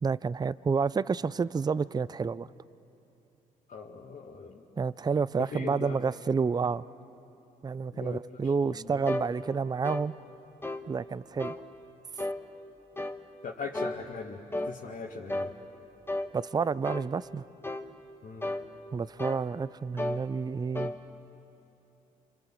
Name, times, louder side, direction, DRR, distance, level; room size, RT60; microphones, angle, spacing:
voice 1, 0.0-2.5 4.8-6.8 7.6-10.1 10.9-11.6 16.3-17.4 18.9-20.9, right 5 dB, 25° right, 19 dB, 0.5 m, -29 dB
voice 2, 3.7-4.6 5.5-6.0 7.9-8.2 8.6-9.0 13.4-15.5 18.2-18.5, left 5 dB, 50° left, -2 dB, 2.0 m, -40 dB
sound 1, 9.1-9.3 9.8-10.1 10.6-10.9 11.4-11.6 12.2-12.4 13.0-13.2 13.7-14.0 14.5-14.7 15.3-15.5 16.1-16.3 16.8-17.1 17.6-17.9 18.4-18.7 19.2-19.5 20.0-20.2 20.7-21.0, left 1 dB, 15° left, 1.5 m, -33 dB
27.5 x 25.0 x 7.7 m, 2.9 s
hypercardioid pair, 50°, 17 cm